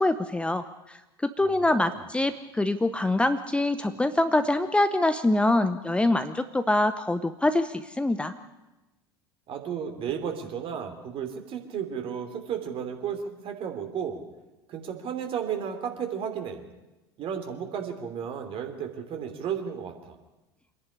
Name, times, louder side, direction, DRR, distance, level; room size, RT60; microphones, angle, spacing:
voice 1, 0.0-8.3, left 2 dB, 10° left, 10 dB, 0.8 m, -25 dB
voice 2, 1.4-2.0 9.5-14.2 14.7-16.6 17.2-20.2, right 8 dB, 45° right, 5 dB, 3.2 m, -33 dB
25.0 x 11.0 x 10.0 m, 1.1 s
hypercardioid pair, 75°, 13 cm